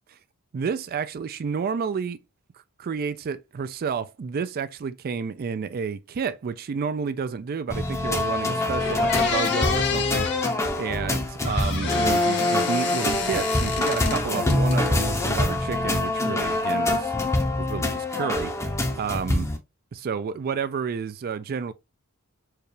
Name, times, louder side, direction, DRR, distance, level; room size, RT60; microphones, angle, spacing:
voice 1, 0.5-2.2 2.8-17.1 17.6-18.6 19.0-19.5 19.9-21.7, right 6 dB, 45° right, 0.3 m, -30 dB
sound 1, 7.7-19.6, left 2 dB, 15° left, 0.6 m, -25 dB
sound 2, 8.3-8.4 8.8-10.5 11.4-14.2 14.5-15.2, left 6 dB, 55° left, 0.9 m, -29 dB
4.6 x 2.3 x 3.1 m
head